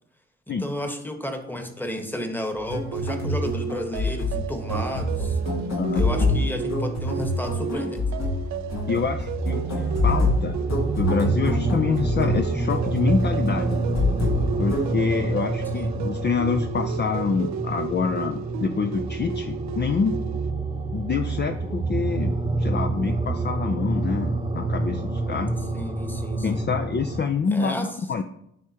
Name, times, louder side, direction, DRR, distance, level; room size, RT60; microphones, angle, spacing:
voice 1, 0.5-5.4 5.9-8.0 15.7-15.9 25.7-26.7 27.5-27.9, equal, 5° left, 5 dB, 1.2 m, -32 dB
sound 1, 2.6-14.9, left 1 dB, 60° left, 1.5 m, -27 dB
sound 2, 2.9-20.5, right 8 dB, 70° right, 0.4 m, -34 dB
voice 2, 8.9-9.6 10.0-10.6 11.0-13.7 14.6-20.1 20.9-25.5 26.4-28.2, left 5 dB, 35° left, 6 dB, 0.5 m, -26 dB
sound 3, 9.4-27.2, right 2 dB, 15° right, 0.9 m, -28 dB
9.4 x 3.6 x 2.9 m, 0.73 s
supercardioid pair, 50°, 30 cm